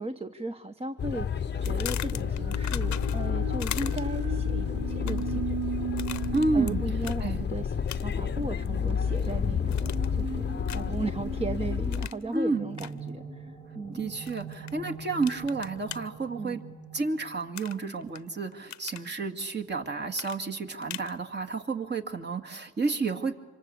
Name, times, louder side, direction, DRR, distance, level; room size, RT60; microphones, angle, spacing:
voice 1, 0.0-5.6 6.2-14.1 16.4-16.6, right 2 dB, 20° right, 9 dB, 0.9 m, -36 dB
sound 1, 1.0-12.1, left 7 dB, 35° left, 0.8 m, -30 dB
sound 2, 1.5-17.8, right 4 dB, 60° right, 4.7 m, -40 dB
sound 3, 1.6-3.3 3.6-4.2 4.9-5.4 6.0-6.7 7.0-7.2 7.9-8.3 8.7-9.3 9.7-10.2 10.7-11.0 11.9-12.2 12.7-12.9 14.3-14.7 15.2-16.0 17.5-18.2 18.5-19.1 20.1-21.1, left 13 dB, 65° left, 0.8 m, -39 dB
voice 2, 6.3-6.8 7.2-7.5 12.3-12.7 13.9-16.6 16.9-23.3, right 3 dB, 35° right, 4 dB, 2.1 m, -30 dB
27.5 x 25.5 x 8.4 m, 1.3 s
cardioid pair, 90°, 30 cm